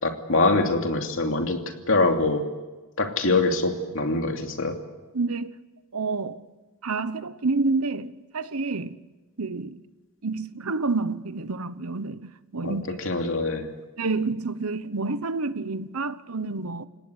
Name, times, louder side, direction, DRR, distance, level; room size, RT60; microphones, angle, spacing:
voice 1, 0.0-2.5 3.0-4.8 12.6-13.7, left 2 dB, 65° left, 2.9 m, -24 dB
voice 2, 5.1-5.5 5.9-6.5 6.8-9.0 9.4-9.8 10.2-12.9 14.0-16.9, right 3 dB, 85° right, 1.1 m, -28 dB
30.0 x 18.0 x 8.2 m
head